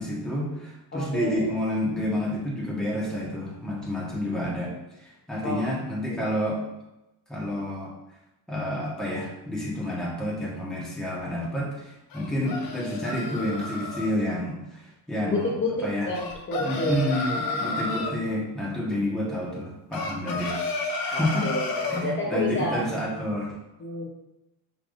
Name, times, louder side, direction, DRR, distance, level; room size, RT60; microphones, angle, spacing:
voice 1, 0.0-6.6 7.3-7.9 8.5-15.5 15.8-16.1 16.6-20.6 21.1-21.5 21.9-23.5, left 1 dB, ahead, -5 dB, 1.5 m, -29 dB
voice 2, 0.9-1.5 5.4-5.6 6.1-6.2 15.3-15.7 16.0-17.8 21.1-22.8 23.8-24.1, left 2 dB, 25° left, -5 dB, 1.0 m, -30 dB
sound 1, 12.1-14.1 16.1-18.2 19.9-22.1, left 3 dB, 45° left, 0.8 m, -31 dB
5.6 x 3.5 x 2.7 m, 0.93 s
supercardioid pair, 95°, 48 cm